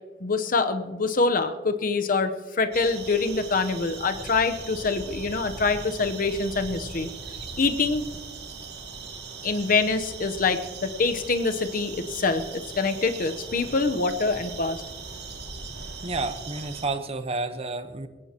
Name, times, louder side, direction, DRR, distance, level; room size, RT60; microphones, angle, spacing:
voice 1, 0.2-7.1 7.6-8.0 9.4-14.8, left 4 dB, 50° left, 8 dB, 0.9 m, -25 dB
sound 1, 2.7-16.9, right 4 dB, 65° right, 2.3 m, -39 dB
voice 2, 16.0-18.1, right 3 dB, 35° right, 10 dB, 0.9 m, -30 dB
21.0 x 17.0 x 2.9 m, 1.3 s
head